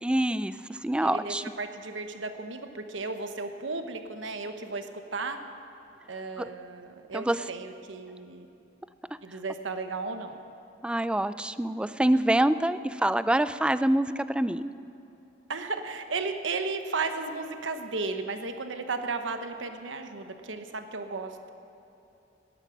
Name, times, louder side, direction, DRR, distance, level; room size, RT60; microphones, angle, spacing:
voice 1, 0.0-1.4 6.4-6.5 7.1-7.4 10.8-14.7, right 1 dB, 5° right, 14 dB, 0.3 m, -26 dB
voice 2, 1.0-5.4 6.1-8.5 9.2-10.4 15.5-21.4, right 3 dB, 90° right, 7 dB, 1.1 m, -34 dB
17.0 x 11.5 x 6.4 m, 3.0 s
head